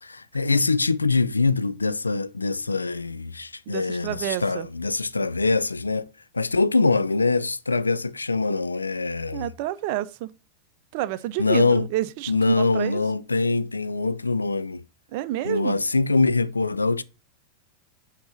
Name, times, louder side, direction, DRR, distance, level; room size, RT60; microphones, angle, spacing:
voice 1, 0.0-9.5 11.4-11.9 12.3-14.8 15.4-17.0, left 3 dB, 80° left, 0.4 m, -23 dB
voice 2, 3.7-4.7 9.3-10.3 10.9-13.0 15.1-15.8, right 14 dB, 45° right, 0.5 m, -29 dB
7.7 x 2.9 x 5.4 m
figure-of-eight pair, 90°, 0 cm